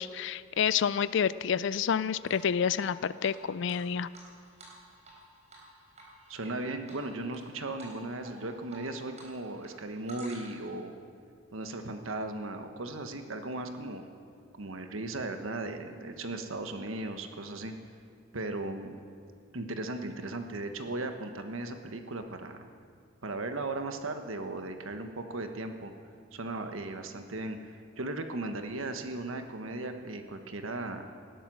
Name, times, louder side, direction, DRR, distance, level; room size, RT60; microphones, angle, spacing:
voice 1, 0.0-4.1, left 7 dB, 65° left, 16 dB, 0.4 m, -29 dB
Drip, 2.3-2.9 3.2-3.3 3.7-5.2 5.5-5.7 6.0-6.5 6.9-7.4 7.8-8.0 8.2-9.3 9.6-10.7, right 2 dB, 35° right, 4.2 m, -50 dB
voice 2, 6.3-10.9 11.5-14.1 14.6-17.7 18.3-18.9 19.5-22.7 23.2-25.9 26.3-31.1, right 2 dB, 85° right, 6 dB, 1.3 m, -37 dB
19.0 x 12.0 x 6.3 m, 2.2 s
head